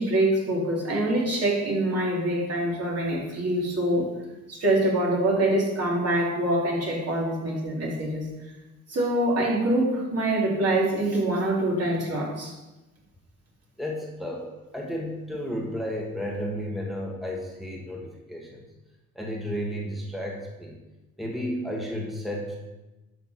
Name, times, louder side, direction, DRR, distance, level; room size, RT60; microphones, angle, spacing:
voice 1, 0.0-4.1 4.5-8.3 8.9-12.5, right 1 dB, 55° right, -4 dB, 3.3 m, -25 dB
voice 2, 13.8-14.4 14.7-18.6 19.1-20.8 21.2-22.6, equal, ahead, -1 dB, 1.6 m, -32 dB
11.0 x 5.8 x 4.4 m, 1.1 s
cardioid pair, 90°, 30 cm